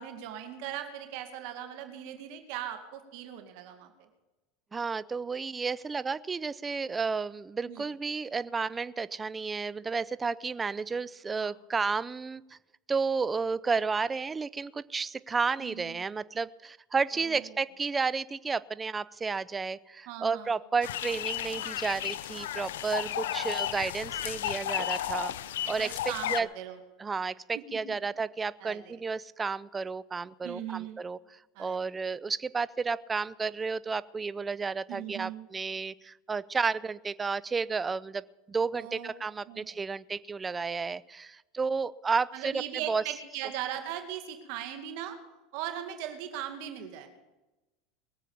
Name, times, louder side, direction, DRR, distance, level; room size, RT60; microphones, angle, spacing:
voice 1, 0.0-4.1 7.7-7.9 11.3-11.5 15.6-16.0 17.1-17.5 20.1-20.5 23.0-23.4 25.8-26.8 27.7-27.9 28.6-29.0 30.4-31.0 31.6-31.8 34.9-35.5 38.8-39.1 39.5-39.7 42.3-45.2 45.5-47.1, right 11 dB, 65° right, 7 dB, 1.9 m, -39 dB
voice 2, 4.7-12.4 12.9-25.9 26.3-26.5 27.0-42.5 42.9-43.0, right 4 dB, 20° right, 19 dB, 0.5 m, -32 dB
sound 1, 20.8-26.4, left 12 dB, 85° left, 0.6 m, -33 dB
21.5 x 7.4 x 7.0 m, 1.1 s
supercardioid pair, 105°, 0 cm